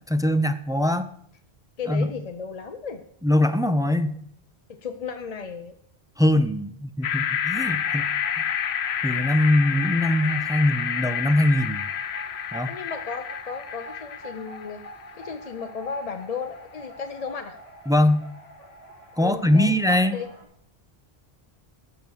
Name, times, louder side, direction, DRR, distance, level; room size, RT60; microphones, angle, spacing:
voice 1, 0.1-1.1 1.9-2.1 3.2-4.2 6.2-8.1 8.4-8.5 9.0-11.9 12.5-12.7 17.9-18.3 19.2-20.2, left 1 dB, 5° right, 9 dB, 0.3 m, -22 dB
voice 2, 1.8-3.0 4.7-5.8 12.7-14.8 15.1-17.6 19.2-20.3, left 5 dB, 45° left, 7 dB, 0.6 m, -34 dB
sound 1, 7.0-15.2, left 9 dB, 80° left, 0.9 m, -29 dB
sound 2, 7.5-20.4, right 1 dB, 30° right, 3.4 m, -46 dB
12.5 x 6.6 x 6.4 m, 0.69 s
omnidirectional pair, 1.1 m